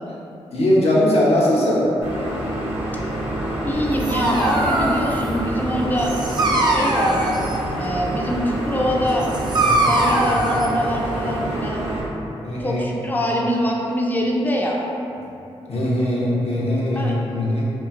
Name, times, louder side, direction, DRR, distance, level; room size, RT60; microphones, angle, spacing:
voice 1, 0.5-1.8 9.6-9.9 12.4-12.8 15.7-17.6, left 1 dB, 60° left, -6 dB, 0.7 m, -20 dB
sound 1, 2.0-12.0, right 1 dB, 70° right, 0.7 m, -27 dB
voice 2, 3.7-6.1 6.6-7.3 7.8-9.3 9.8-11.8 12.6-14.9 17.0-17.1, equal, 15° left, -1 dB, 0.5 m, -24 dB
Dog, 3.7-11.6, right 1 dB, 40° right, 0.4 m, -23 dB
2.9 x 2.4 x 2.4 m, 2.7 s
supercardioid pair, 40°, 12 cm